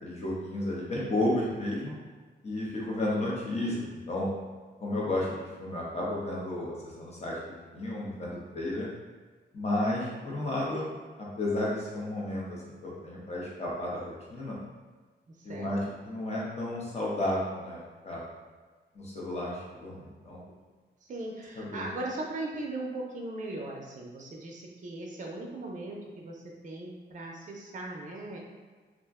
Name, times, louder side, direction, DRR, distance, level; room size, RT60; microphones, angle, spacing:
voice 1, 0.0-2.0 2.4-4.3 4.8-8.9 9.5-10.9 11.2-14.6 15.4-15.8 16.0-18.2 18.9-20.4 21.6-21.9, left 1 dB, 35° left, -5 dB, 0.7 m, -32 dB
voice 2, 15.4-15.7 21.0-28.4, right 2 dB, 45° right, -1 dB, 0.5 m, -38 dB
2.4 x 2.1 x 3.5 m, 1.4 s
wide cardioid pair, 165°, 18 cm